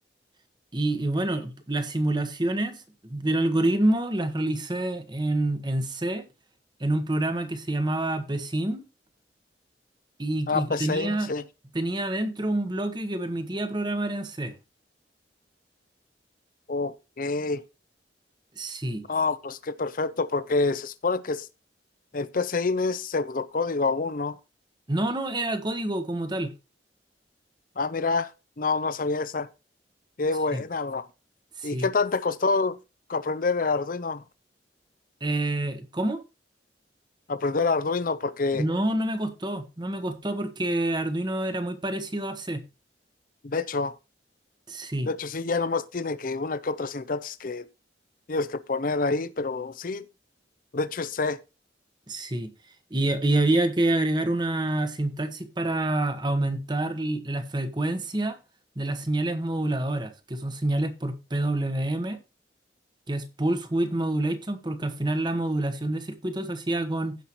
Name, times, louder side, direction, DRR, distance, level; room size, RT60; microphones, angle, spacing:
voice 1, 0.7-6.3 6.8-8.8 10.2-11.3 11.7-14.5 18.6-19.0 24.9-26.5 30.5-30.6 31.6-31.9 35.2-36.2 38.5-42.6 44.7-45.1 52.1-52.5 52.9-58.4 58.8-62.2 63.1-67.2, right 1 dB, 25° right, 1.1 m, -27 dB
voice 2, 10.5-11.4 16.7-17.6 19.1-21.5 22.1-24.4 27.8-28.3 28.6-29.5 30.2-31.1 31.6-32.8 33.1-34.2 37.3-38.6 43.4-44.0 45.1-47.7 48.3-50.1 50.7-51.4, left 3 dB, 50° left, 0.6 m, -27 dB
15.5 x 5.6 x 3.0 m
head